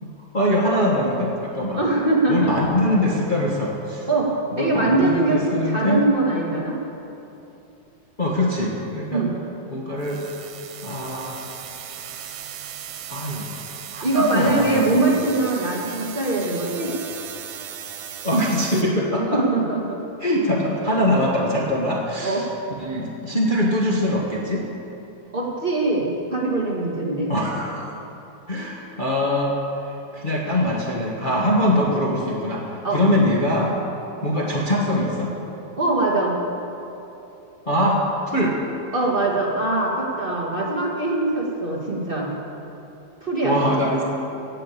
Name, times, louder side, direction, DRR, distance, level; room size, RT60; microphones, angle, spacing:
voice 1, 0.0-1.8 2.3-4.1 4.5-6.0 8.2-9.2 9.7-10.2 10.8-11.4 13.1-13.5 13.9-15.2 18.2-19.4 20.2-22.5 22.8-24.6 27.3-27.9 28.5-29.5 29.8-33.7 34.2-35.3 37.7-38.6 43.4-44.0, left 1 dB, 70° left, -4 dB, 0.4 m, -23 dB
voice 2, 1.7-2.5 4.1-4.3 4.6-6.8 9.1-9.3 14.0-16.9 19.2-20.0 22.2-22.5 25.3-27.3 32.8-33.0 35.8-36.4 38.9-42.3 43.2-43.6, right 2 dB, 25° right, -3 dB, 1.5 m, -22 dB
sound 1, 10.0-18.8, right 9 dB, 85° right, 2.5 m, -37 dB
16.5 x 7.8 x 8.4 m, 2.9 s
omnidirectional pair, 3.5 m